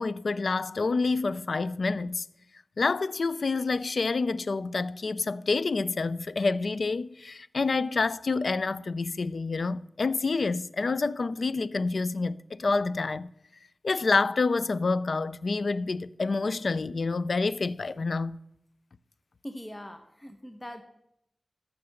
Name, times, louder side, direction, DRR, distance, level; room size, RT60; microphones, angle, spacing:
voice 1, 0.0-2.3 2.8-13.3 13.8-18.4, left 3 dB, 70° left, 0.4 m, -28 dB
voice 2, 19.4-20.8, equal, 20° left, 0.9 m, -41 dB
13.0 x 5.9 x 6.5 m
cardioid pair, 55°, 0 cm